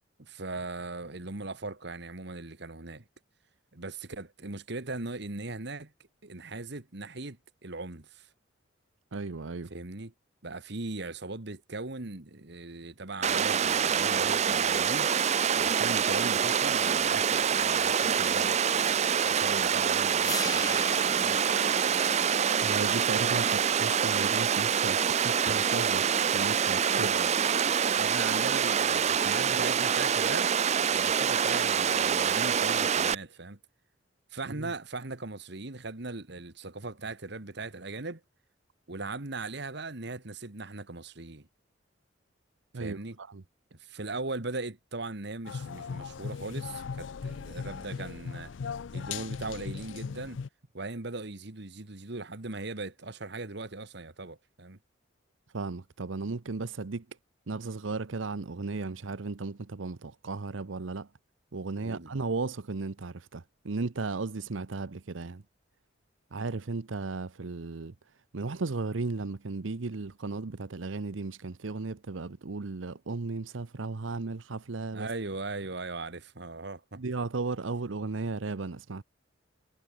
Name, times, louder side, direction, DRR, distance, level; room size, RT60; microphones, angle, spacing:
voice 1, 0.2-3.1 3.7-5.9 6.2-8.3 9.7-10.1 10.4-15.1 15.6-19.0 19.3-21.4 26.9-27.3 28.0-30.5 30.9-33.6 34.3-38.2 38.9-41.5 42.8-43.2 43.7-48.5 48.9-50.4 50.7-54.8 61.8-62.1 74.9-77.0, right 3 dB, 60° right, 1.8 m, -39 dB
voice 2, 9.1-9.7 22.6-27.1 34.5-34.7 42.7-43.4 55.5-57.1 57.5-61.1 61.5-65.4 66.3-67.9 68.3-75.1 77.0-79.0, right 3 dB, 90° right, 0.8 m, -35 dB
Water, 13.2-33.2, right 7 dB, 35° right, 0.5 m, -26 dB
sound 1, 20.2-26.2, left 4 dB, 20° left, 3.3 m, -42 dB
sound 2, 45.5-50.5, left 5 dB, 75° left, 0.4 m, -38 dB
head